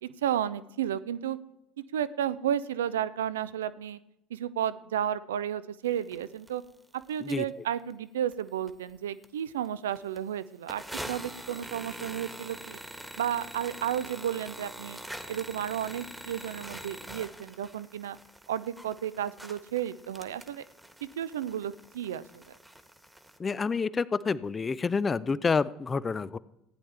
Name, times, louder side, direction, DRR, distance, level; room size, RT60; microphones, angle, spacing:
voice 1, 0.0-1.4 1.9-4.0 4.3-6.6 7.1-12.8 13.2-15.0 15.3-18.2 18.5-20.6 21.2-22.4, right 10 dB, 80° right, 16 dB, 0.4 m, -32 dB
sound 1, 6.1-6.2 6.5-6.6 7.0-7.4 7.9-8.0 8.3-8.9 9.2-9.3 9.6-9.7 9.9-10.2 10.7-23.4, right 1 dB, 5° right, 1.3 m, -44 dB
voice 2, 23.4-26.4, left 5 dB, 25° left, 18 dB, 0.5 m, -28 dB
15.5 x 9.9 x 3.4 m, 0.87 s
figure-of-eight pair, 65°, 0 cm